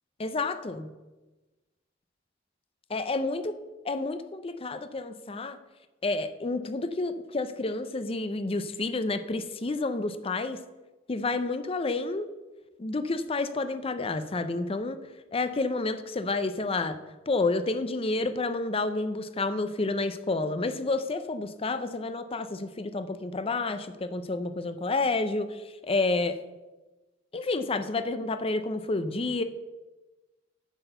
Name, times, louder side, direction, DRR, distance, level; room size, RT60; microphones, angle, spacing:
voice 1, 0.2-0.9 2.9-3.6 3.8-5.6 6.0-10.6 11.1-12.3 12.8-15.0 15.3-17.0 17.3-26.4 27.3-29.4, left 3 dB, 30° left, 10 dB, 0.5 m, -29 dB
8.1 x 6.1 x 6.7 m, 1.1 s
head